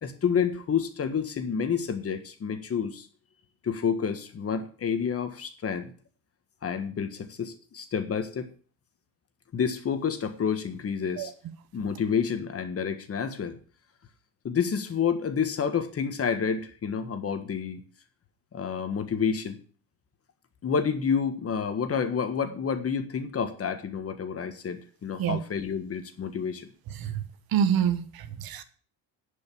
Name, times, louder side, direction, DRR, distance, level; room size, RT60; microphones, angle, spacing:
voice 1, 0.0-3.1 3.6-5.9 6.6-8.5 9.5-11.3 11.7-13.6 14.4-17.8 18.5-19.6 20.6-26.7, left 6 dB, 35° left, 9 dB, 1.5 m, -29 dB
voice 2, 27.5-28.6, right 8 dB, 65° right, 12 dB, 1.3 m, -26 dB
10.5 x 5.4 x 8.3 m, 0.42 s
cardioid pair, 120°, 39 cm